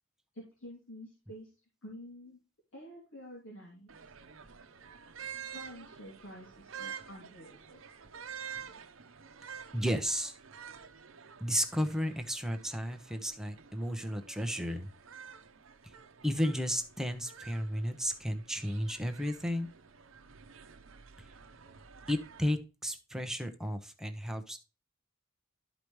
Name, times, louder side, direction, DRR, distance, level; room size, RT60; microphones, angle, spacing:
voice 1, 0.3-1.5 1.8-2.4 2.7-3.9 5.5-7.8, equal, 75° left, -3 dB, 2.8 m, -49 dB
sound 1, 3.9-22.5, right 7 dB, 75° right, 0.8 m, -49 dB
voice 2, 9.7-10.4 11.4-14.9 16.2-19.7 22.1-24.6, equal, 5° right, 5 dB, 0.9 m, -33 dB
12.0 x 5.0 x 3.1 m, 0.32 s
head